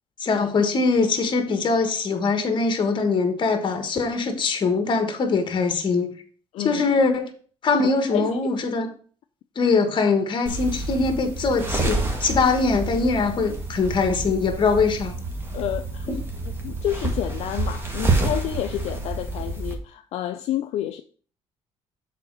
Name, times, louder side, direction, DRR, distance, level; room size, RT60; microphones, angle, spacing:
voice 1, 0.2-6.1 6.6-7.3 7.6-8.9 9.5-15.2 16.1-16.2, left 4 dB, 45° left, 1.4 m, -22 dB
voice 2, 6.5-6.8 7.8-8.6 15.5-16.1 16.6-21.0, left 12 dB, 70° left, 0.5 m, -29 dB
sound 1, 10.5-19.7, right 2 dB, 20° right, 1.7 m, -28 dB
6.8 x 4.1 x 6.2 m
cardioid pair, 105°, 11 cm